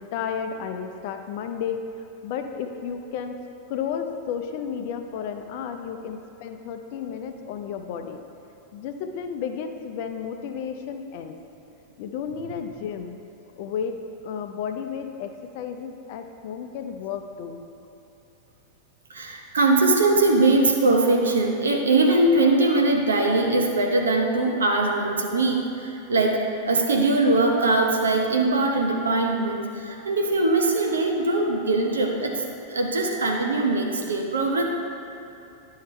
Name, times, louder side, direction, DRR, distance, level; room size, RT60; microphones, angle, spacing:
voice 1, 0.0-3.4 3.7-8.2 8.7-11.4 12.0-13.2 13.6-14.0 14.2-17.6, left 7 dB, 50° left, 6 dB, 0.6 m, -32 dB
voice 2, 19.1-32.4 32.7-34.6, right 2 dB, 70° right, 2 dB, 0.9 m, -21 dB
11.0 x 5.6 x 3.3 m, 2.8 s
figure-of-eight pair, 90°, 0 cm